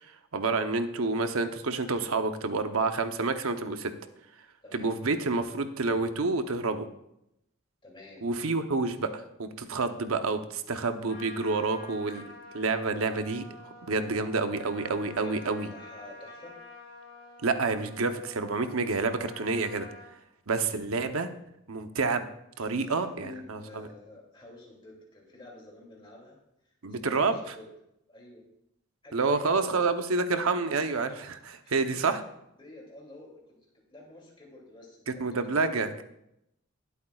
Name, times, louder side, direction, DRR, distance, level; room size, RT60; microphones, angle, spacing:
voice 1, 0.3-3.9 4.7-6.9 8.2-12.2 12.5-13.4 13.8-15.7 17.4-19.9 20.5-21.3 21.7-22.2 22.6-23.9 26.8-27.4 29.1-32.2 35.1-36.0, right 3 dB, 90° right, 8 dB, 0.8 m, -28 dB
voice 2, 7.8-8.3 15.2-16.5 22.6-26.4 27.0-27.7 28.1-28.4 29.0-29.9 31.6-32.1 32.6-33.6 33.9-35.8, left 2 dB, 25° left, -2 dB, 2.7 m, -48 dB
Trumpet, 11.1-20.2, left 2 dB, 70° left, 3.4 m, -48 dB
20.0 x 8.2 x 2.4 m, 0.82 s
head